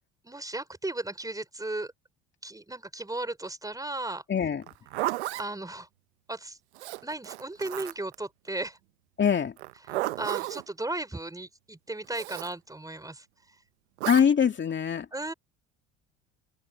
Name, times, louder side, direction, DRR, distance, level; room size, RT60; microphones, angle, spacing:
voice 1, 0.2-1.9 2.4-4.2 5.4-5.9 6.3-6.6 7.0-8.8 10.2-13.2 15.1-15.3, right 2 dB, 10° right, 4.7 m, -35 dB
voice 2, 4.3-4.6 9.2-9.5 14.0-15.1, left 7 dB, 35° left, 2.5 m, -23 dB
Zipper (clothing), 4.6-5.5 6.8-8.2 9.6-10.6 12.1-12.5 14.0-14.3, right 17 dB, 90° right, 0.8 m, -33 dB
open air
hypercardioid pair, 75°, 32 cm